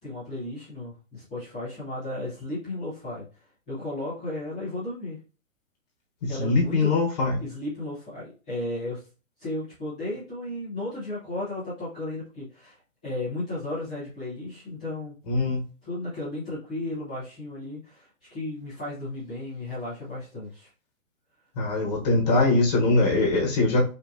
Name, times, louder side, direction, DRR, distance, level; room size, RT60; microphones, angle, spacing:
voice 1, 0.0-3.2 3.7-5.2 6.3-6.9 7.4-9.0 9.4-15.1 15.8-20.7, left 1 dB, 5° left, -12 dB, 0.5 m, -34 dB
voice 2, 6.2-7.3 15.3-15.6 21.6-23.9, left 2 dB, 30° left, 0 dB, 1.1 m, -22 dB
5.7 x 2.6 x 2.6 m, 0.35 s
hypercardioid pair, 160°, 42 cm